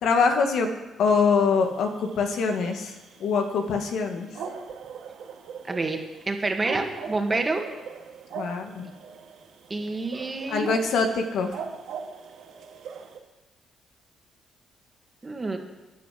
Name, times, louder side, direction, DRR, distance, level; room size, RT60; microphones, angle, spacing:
voice 1, 0.0-0.7 1.0-4.3 8.3-8.9 10.5-11.7, left 5 dB, 75° left, 4 dB, 2.0 m, -24 dB
sound 1, 1.6-13.2, right 6 dB, 80° right, 2.3 m, -41 dB
voice 2, 5.7-6.0 6.3-7.7 9.7-10.7 15.2-15.6, right 3 dB, 25° right, 3 dB, 2.4 m, -27 dB
11.5 x 10.0 x 7.8 m, 1.1 s
cardioid pair, 90°, 0 cm